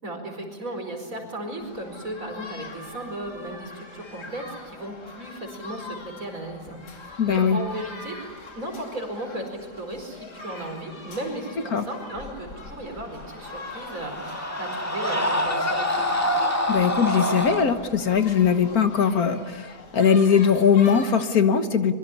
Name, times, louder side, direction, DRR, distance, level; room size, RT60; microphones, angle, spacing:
voice 1, 0.0-8.2 8.6-16.1, right 1 dB, 55° right, 4 dB, 5.2 m, -35 dB
sound 1, 1.6-21.2, left 3 dB, 85° left, 3.3 m, -43 dB
voice 2, 7.2-7.6 11.7-11.8 16.7-21.9, left 7 dB, 65° left, 9 dB, 1.7 m, -20 dB
Screaming, 13.2-17.7, left 1 dB, 10° left, 2.2 m, -26 dB
24.5 x 23.0 x 9.8 m, 1.4 s
omnidirectional pair, 1.8 m